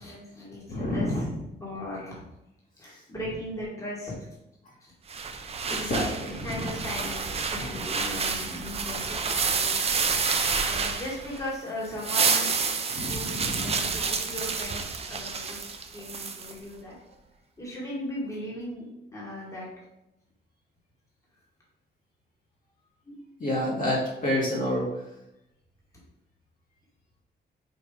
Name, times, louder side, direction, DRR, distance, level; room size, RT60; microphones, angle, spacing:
voice 1, 0.0-1.3 1.6-2.2 2.8-4.1 4.8-4.9 5.7-10.2 10.6-12.5 12.9-15.7 15.9-17.0 17.6-18.8 19.1-19.7, left 1 dB, 15° left, -5 dB, 2.1 m, -38 dB
voice 2, 0.7-1.4 3.2-3.3 5.6-6.8 12.9-13.8 23.1-23.2 23.4-25.0, left 1 dB, 50° left, -4 dB, 2.2 m, -29 dB
sound 1, 5.1-11.5 11.8-16.5, right 5 dB, 35° right, 0.7 m, -29 dB
5.1 x 4.8 x 5.0 m, 0.88 s
wide cardioid pair, 160°, 18 cm